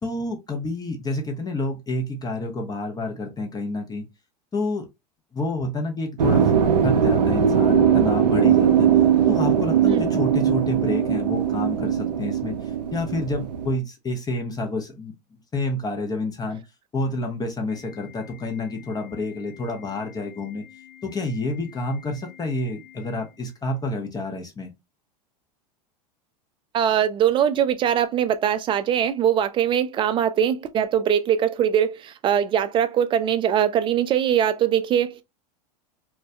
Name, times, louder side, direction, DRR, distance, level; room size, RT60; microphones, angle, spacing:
voice 1, 0.0-4.1 4.5-4.8 5.3-6.5 6.8-8.9 9.3-12.6 12.9-16.6 16.9-20.6 21.0-24.7, left 2 dB, 20° left, 0.7 m, -29 dB
sound 1, 6.2-13.7, right 8 dB, 90° right, 0.4 m, -20 dB
Organ, 17.7-23.7, left 12 dB, 85° left, 0.8 m, -49 dB
voice 2, 26.7-35.2, right 9 dB, 25° right, 0.3 m, -22 dB
2.2 x 2.2 x 2.6 m
hypercardioid pair, 90°, 20 cm